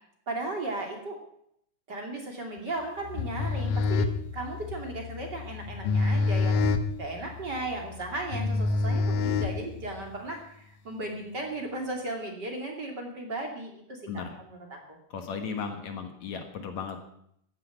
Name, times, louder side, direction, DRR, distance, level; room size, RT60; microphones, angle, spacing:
voice 1, 0.3-1.2 1.9-4.1 4.3-15.0, right 2 dB, 35° right, 2 dB, 3.0 m, -36 dB
sound 1, 3.1-10.1, left 3 dB, 90° left, 2.7 m, -27 dB
voice 2, 15.1-17.0, left 5 dB, 60° left, 6 dB, 2.7 m, -35 dB
15.5 x 10.0 x 8.2 m, 0.70 s
omnidirectional pair, 3.7 m